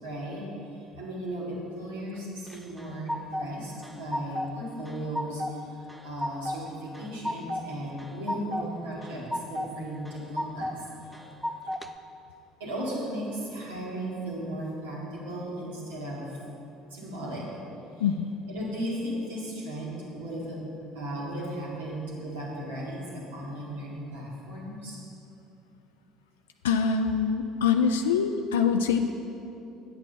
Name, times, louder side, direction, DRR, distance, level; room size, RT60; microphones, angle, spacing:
voice 1, 0.0-0.5 1.0-5.4 5.8-11.2 12.6-16.3 16.9-17.5 18.5-20.6 20.9-25.0, right 1 dB, 75° right, -4 dB, 1.9 m, -36 dB
sound 1, 2.5-3.5 3.8-4.6 4.9-5.5 5.9-6.6 6.9-7.6 8.0-8.7 9.0-9.7 10.1-10.8 11.1-11.9, left 1 dB, ahead, 0.5 m, -33 dB
voice 2, 26.6-29.0, left 6 dB, 75° left, 6 dB, 0.3 m, -24 dB
9.5 x 8.3 x 4.0 m, 2.8 s
figure-of-eight pair, 60°, 0 cm